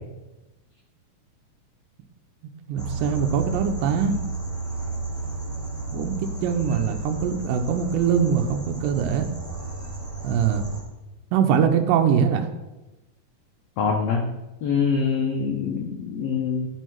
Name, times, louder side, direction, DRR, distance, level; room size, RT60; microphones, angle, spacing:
voice 1, 2.7-4.2 5.9-9.3 10.2-10.7 11.3-12.5, right 7 dB, 85° right, 5 dB, 2.3 m, -22 dB
sound 1, 2.8-10.8, right 3 dB, 10° left, 1.2 m, -32 dB
voice 2, 13.8-14.3 14.6-16.7, left 5 dB, 85° left, 1 dB, 1.4 m, -24 dB
11.5 x 4.5 x 4.5 m, 1.0 s
omnidirectional pair, 4.0 m